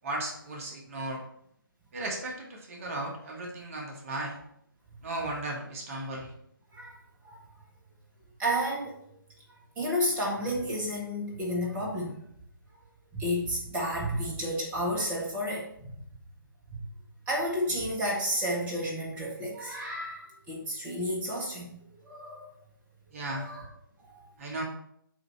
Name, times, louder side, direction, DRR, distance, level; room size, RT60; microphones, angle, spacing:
voice 1, 0.0-1.2 1.9-4.4 5.0-6.3 23.1-23.6 24.4-24.6, right 1 dB, 40° right, 1 dB, 1.2 m, -35 dB
voice 2, 8.4-8.9 9.8-12.2 13.1-16.1 16.7-16.9 17.3-21.7 22.0-22.5 23.3-23.6 24.0-24.3, equal, 15° right, -3 dB, 1.2 m, -31 dB
7.7 x 2.8 x 5.4 m, 0.72 s
figure-of-eight pair, 140°, 12 cm